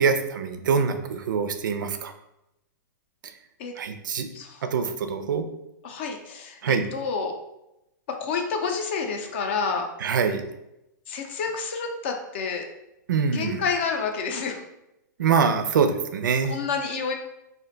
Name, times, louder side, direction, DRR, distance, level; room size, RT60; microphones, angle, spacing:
voice 1, 0.0-2.1 3.8-4.3 4.7-5.5 6.6-6.9 10.0-10.4 13.1-13.6 15.2-16.6, right 6 dB, 90° right, 8 dB, 0.4 m, -24 dB
voice 2, 5.8-7.3 8.2-9.9 11.1-12.7 13.3-14.6 16.5-17.1, left 5 dB, 35° left, 4 dB, 0.4 m, -29 dB
2.5 x 2.1 x 3.8 m, 0.88 s
hypercardioid pair, 170°, 10 cm